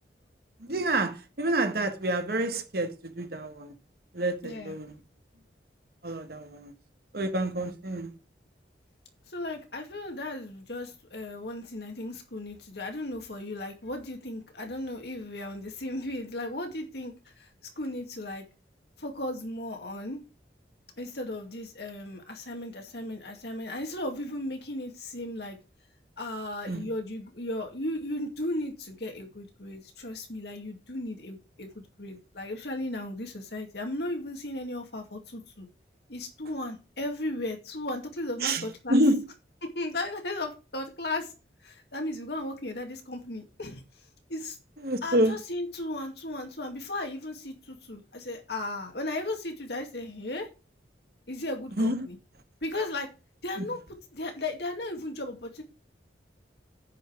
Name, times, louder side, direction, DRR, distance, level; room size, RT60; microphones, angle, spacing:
voice 1, 0.6-3.7 4.1-5.0 6.0-6.7 7.1-8.1 26.7-26.9 38.4-39.2 44.8-45.4 51.8-52.1 53.6-53.7, right 1 dB, 60° right, 1.5 m, -28 dB
voice 2, 4.4-4.8 9.3-17.5 17.8-18.4 19.0-20.2 21.0-25.6 26.2-35.7 36.1-39.0 39.6-41.3 41.6-43.8 44.3-44.6 45.0-50.5 51.3-52.2 52.6-53.1 53.4-55.6, left 1 dB, 65° left, 2.4 m, -36 dB
9.9 x 5.5 x 6.0 m
head